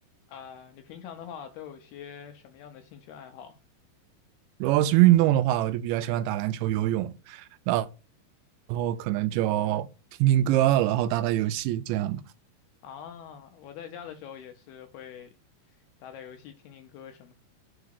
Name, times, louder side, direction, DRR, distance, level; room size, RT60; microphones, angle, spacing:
voice 1, 0.3-3.6 12.8-15.3 15.7-17.3, left 8 dB, 80° left, 2.3 m, -44 dB
voice 2, 4.6-7.9 8.7-9.9 10.2-12.2, right 14 dB, 85° right, 2.8 m, -24 dB
6.1 x 4.8 x 6.5 m
omnidirectional pair, 5.3 m